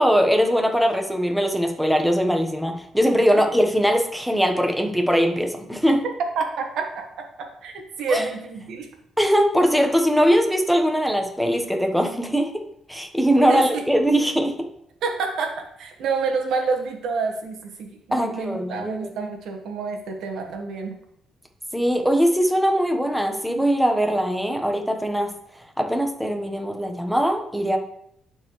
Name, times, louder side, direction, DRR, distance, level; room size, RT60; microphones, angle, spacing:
voice 1, 0.0-6.0 8.1-8.3 9.2-12.5 12.9-14.5 18.1-19.1 21.7-25.3 25.8-27.8, equal, ahead, 3 dB, 1.1 m, -21 dB
voice 2, 6.3-6.9 7.4-8.9 13.5-13.6 15.0-20.9, right 4 dB, 80° right, 2 dB, 1.5 m, -28 dB
11.5 x 4.5 x 3.2 m, 0.73 s
cardioid pair, 90°, 0 cm